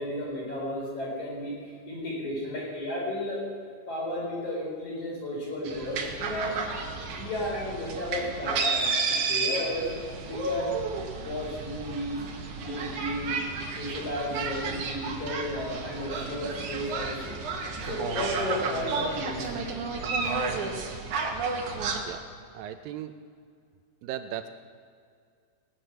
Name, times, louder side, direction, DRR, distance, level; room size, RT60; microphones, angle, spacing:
voice 1, 0.0-1.5 1.9-3.4 3.9-6.6 7.1-9.9 10.3-10.7 11.2-12.2 12.6-13.4 13.8-17.4 17.8-19.4, left 1 dB, 50° left, -3 dB, 5.8 m, -33 dB
sound 1, 5.6-22.0, right 4 dB, 60° right, 2.7 m, -32 dB
voice 2, 22.5-23.1 24.0-24.5, right 11 dB, 80° right, 9 dB, 2.1 m, -36 dB
18.0 x 10.0 x 6.2 m, 2.2 s
omnidirectional pair, 4.4 m